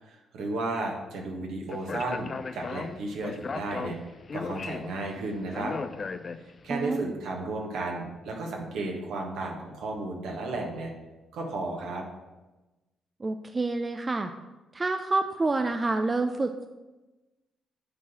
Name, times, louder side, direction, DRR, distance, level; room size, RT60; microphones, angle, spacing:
voice 1, 0.0-4.0 4.3-5.7 6.6-10.9 11.3-12.0, right 2 dB, 70° right, 0 dB, 1.5 m, -33 dB
Speech, 1.7-6.8, left 4 dB, 45° left, 0.4 m, -37 dB
voice 2, 6.7-7.1 13.2-14.3 14.7-16.7, right 3 dB, 30° right, 7 dB, 0.5 m, -28 dB
8.6 x 3.9 x 5.9 m, 1.1 s
hypercardioid pair, 50°, 0 cm